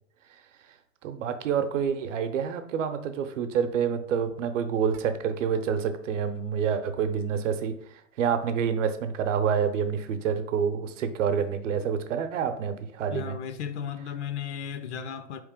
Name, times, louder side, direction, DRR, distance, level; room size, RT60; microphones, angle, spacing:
voice 1, 1.0-13.3, right 7 dB, 70° right, 0.7 m, -28 dB
voice 2, 13.1-15.4, left 8 dB, 60° left, 0.5 m, -35 dB
4.3 x 3.1 x 3.6 m
hypercardioid pair, 120°, 38 cm